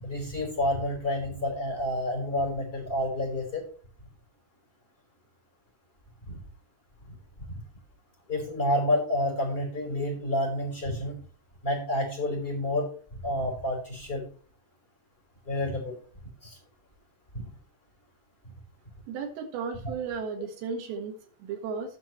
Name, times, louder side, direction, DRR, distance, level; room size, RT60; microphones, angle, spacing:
voice 1, 0.0-3.6 6.3-6.4 8.3-11.1 11.6-12.9 13.2-14.2 15.5-15.9 16.4-16.6, left 1 dB, 15° left, 0 dB, 4.3 m, -29 dB
voice 2, 19.1-22.0, right 5 dB, 90° right, 2 dB, 3.9 m, -35 dB
18.0 x 6.0 x 3.2 m, 0.41 s
omnidirectional pair, 4.9 m